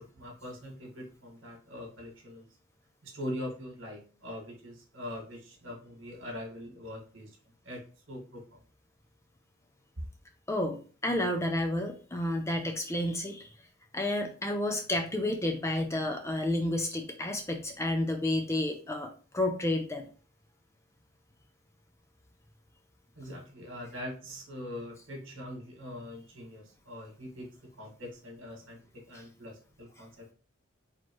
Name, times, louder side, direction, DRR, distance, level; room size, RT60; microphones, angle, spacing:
voice 1, 0.0-2.5 3.0-7.3 7.6-7.8 8.1-8.6 23.2-27.5 27.8-28.8 29.1-30.3, left 1 dB, 70° right, 0 dB, 1.7 m, -42 dB
voice 2, 10.5-13.5 13.9-20.0, left 1 dB, 15° left, 4 dB, 0.4 m, -31 dB
4.4 x 3.0 x 3.0 m, 0.38 s
head